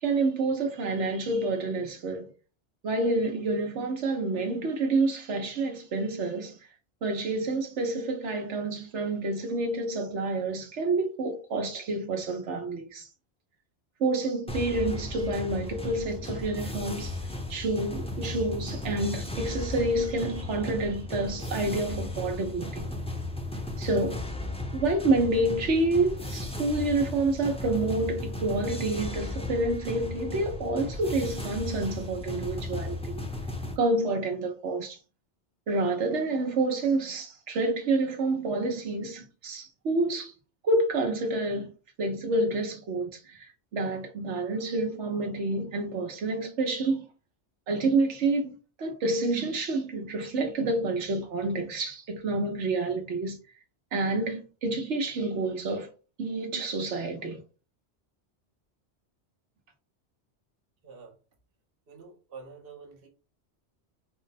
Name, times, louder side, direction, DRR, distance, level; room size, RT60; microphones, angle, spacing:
voice 1, 0.0-2.3 2.8-6.6 7.0-13.1 14.0-17.2 17.5-22.9 23.8-24.2 24.7-33.2 33.8-35.0 35.7-40.3 40.6-41.7 42.0-47.1 47.7-53.4 53.9-55.9 56.2-57.4, right 2 dB, 90° right, 1.2 m, -28 dB
sound 1, 14.5-33.8, left 2 dB, 5° left, 0.7 m, -35 dB
voice 2, 60.8-61.1 61.9-63.1, right 5 dB, 55° right, 1.1 m, -47 dB
4.4 x 2.2 x 4.0 m
omnidirectional pair, 1.2 m